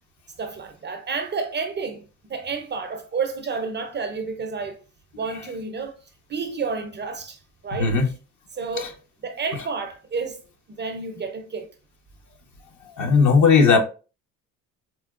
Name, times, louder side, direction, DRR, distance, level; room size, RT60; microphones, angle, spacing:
voice 1, 0.4-4.8 5.1-6.0 6.3-7.9 8.5-8.9 9.2-10.4 10.7-11.7, right 4 dB, 30° right, 0.5 m, -30 dB
voice 2, 7.7-8.1 8.8-8.9 13.0-13.8, left 5 dB, 50° left, 0.9 m, -17 dB
4.3 x 2.0 x 2.4 m
supercardioid pair, 90°, 36 cm